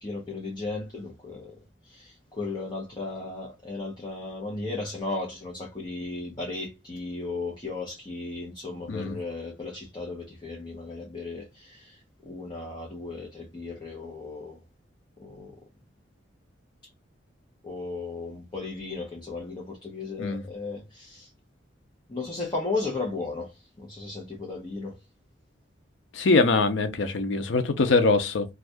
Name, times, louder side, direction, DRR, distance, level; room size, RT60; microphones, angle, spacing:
voice 1, 0.0-1.5 1.8-14.6 15.2-15.6 17.6-21.3 22.1-24.9, left 3 dB, 25° left, 0.8 m, -35 dB
voice 2, 26.1-28.5, left 3 dB, 80° left, 0.5 m, -23 dB
2.6 x 2.4 x 3.3 m
head